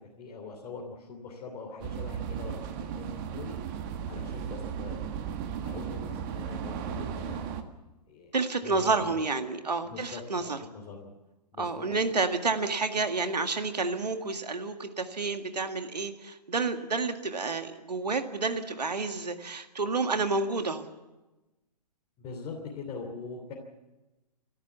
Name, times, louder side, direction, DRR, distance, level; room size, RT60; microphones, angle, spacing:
voice 1, 0.2-3.6 4.0-5.1 5.6-7.5 8.1-8.3 8.6-9.2 9.8-11.1 11.5-11.8 22.2-23.5, left 4 dB, 25° left, -2 dB, 3.2 m, -42 dB
sound 1, 1.8-7.6, right 8 dB, 30° right, 1.7 m, -35 dB
voice 2, 8.3-10.6 11.6-20.9, right 3 dB, 75° right, 7 dB, 1.9 m, -30 dB
29.5 x 13.5 x 7.1 m, 1.1 s
figure-of-eight pair, 125°, 21 cm